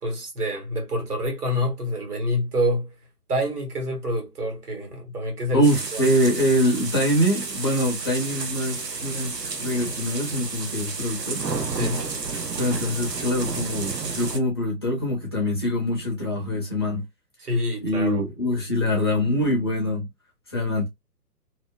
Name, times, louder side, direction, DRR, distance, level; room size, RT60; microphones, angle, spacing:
voice 1, 0.0-2.9 3.3-6.1 7.8-7.9 11.7-12.0 17.4-18.3, equal, 70° right, 1.4 m, -27 dB
voice 2, 5.5-11.4 12.6-17.0 17.8-20.1 20.5-20.9, equal, 15° left, 0.5 m, -24 dB
sound 1, 5.6-14.4, right 4 dB, 90° right, 0.7 m, -31 dB
2.7 x 2.1 x 2.2 m
figure-of-eight pair, 130°, 48 cm